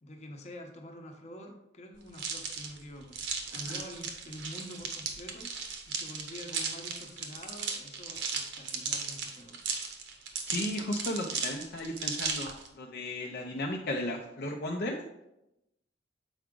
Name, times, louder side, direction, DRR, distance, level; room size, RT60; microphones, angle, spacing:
voice 1, 0.0-3.2 3.5-5.5 5.9-9.6, left 1 dB, 35° left, 3 dB, 0.9 m, -46 dB
sound 1, 2.1-12.7, right 5 dB, 75° right, 1.0 m, -36 dB
voice 2, 10.4-15.0, left 1 dB, 55° left, 0 dB, 0.6 m, -35 dB
7.1 x 4.7 x 3.7 m, 0.90 s
head